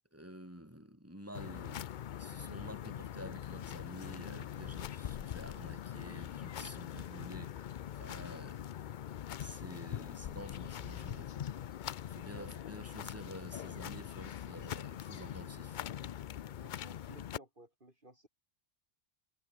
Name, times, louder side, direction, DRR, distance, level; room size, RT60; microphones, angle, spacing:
voice 1, 0.1-9.0 9.4-11.5 12.1-15.8, equal, 10° right, 7.2 m, -50 dB
sound 1, 1.3-17.4, left 10 dB, 55° left, 0.6 m, -43 dB
voice 2, 12.3-12.7 16.6-18.3, right 1 dB, 45° right, 5.3 m, -57 dB
omnidirectional pair, 1.2 m